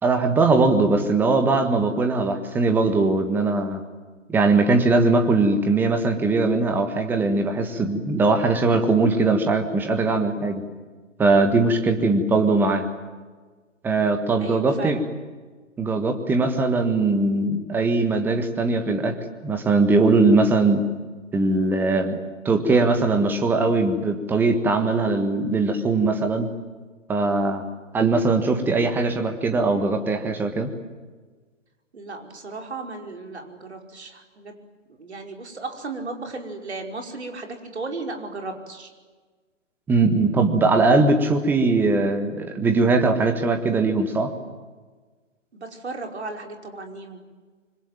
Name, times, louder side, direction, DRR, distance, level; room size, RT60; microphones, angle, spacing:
voice 1, 0.0-3.8 4.3-10.6 11.2-12.9 13.8-15.0 15.8-19.1 19.4-20.8 21.3-22.1 22.4-26.5 27.1-27.6 27.9-30.7 39.9-44.3, right 3 dB, 5° right, 6 dB, 1.5 m, -20 dB
voice 2, 11.7-12.1 14.4-15.0 31.9-34.5 35.0-38.9 45.5-47.2, right 3 dB, 60° right, 3 dB, 5.3 m, -35 dB
26.0 x 25.0 x 9.1 m, 1.4 s
figure-of-eight pair, 140°, 38 cm